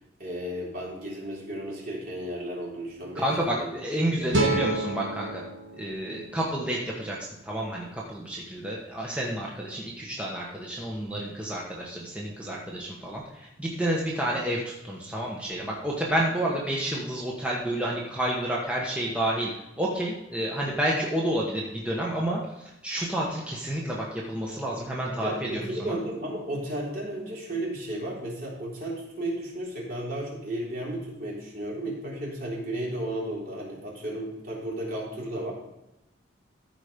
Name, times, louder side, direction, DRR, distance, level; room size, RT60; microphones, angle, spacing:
voice 1, 0.2-3.8 4.1-4.7 25.1-35.5, right 1 dB, 50° right, -4 dB, 3.6 m, -34 dB
voice 2, 3.1-5.4 5.8-26.0, right 1 dB, 5° right, -4 dB, 1.2 m, -30 dB
sound 1, 4.3-7.5, right 2 dB, 70° right, 1.6 m, -30 dB
14.0 x 5.0 x 5.1 m, 0.91 s
head